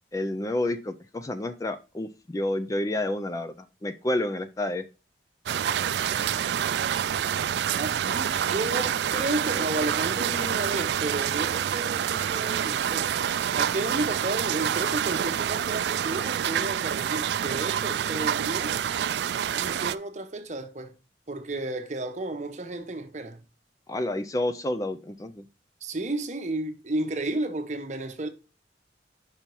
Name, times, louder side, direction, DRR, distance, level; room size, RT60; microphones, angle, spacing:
voice 1, 0.1-3.5 3.8-4.8 23.9-25.4, left 1 dB, 20° left, 0.4 m, -29 dB
sound 1, 5.5-20.0, right 9 dB, 70° right, 0.3 m, -27 dB
voice 2, 7.8-13.2 13.5-18.7 19.6-21.0 21.3-23.4 25.8-28.3, right 2 dB, 40° right, 0.9 m, -32 dB
5.6 x 4.5 x 5.3 m
head